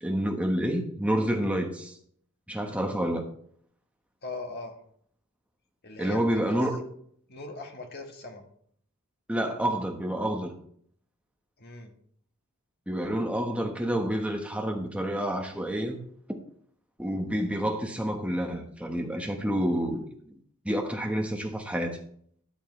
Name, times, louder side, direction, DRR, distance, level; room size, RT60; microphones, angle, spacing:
voice 1, 0.0-1.9 2.5-3.3 6.0-6.8 9.3-10.5 12.9-16.0 17.0-20.3 20.6-22.0, equal, 5° right, 2 dB, 1.4 m, -29 dB
voice 2, 4.2-4.7 5.8-6.6 7.3-8.4 11.6-11.9, left 2 dB, 45° left, 3 dB, 1.8 m, -39 dB
13.0 x 10.0 x 3.4 m, 0.63 s
head